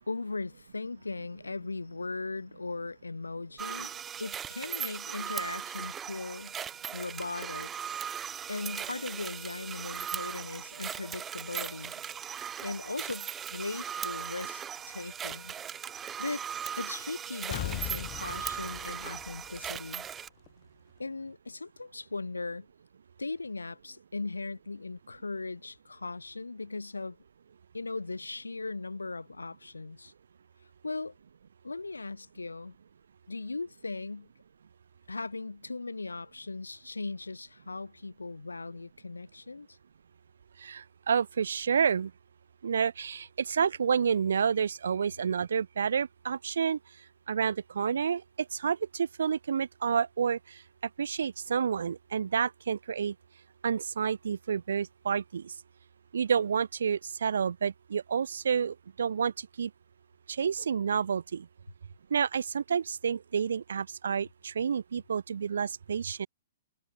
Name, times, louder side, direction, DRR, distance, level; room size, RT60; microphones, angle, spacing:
voice 1, 0.1-3.9 4.2-6.5 6.9-7.7 8.5-11.9 12.6-14.6 14.9-15.5 16.2-16.4 16.8-20.1 21.0-22.7 23.2-27.2 27.7-30.1 30.8-31.1 31.6-32.8 33.3-34.3 35.1-39.8, left 3 dB, 85° left, 0.4 m, -38 dB
sound 1, 3.6-20.3, right 8 dB, 15° right, 0.3 m, -38 dB
Explosion, 17.5-20.1 20.5-20.6, left 22 dB, 30° left, 0.6 m, -39 dB
voice 2, 40.6-42.1 42.6-46.8 47.3-48.2 48.5-50.4 51.0-53.1 53.6-55.5 56.1-59.7 60.3-61.5 62.1-66.3, right 7 dB, 70° right, 0.5 m, -29 dB
figure-of-eight pair, 120°, 0 cm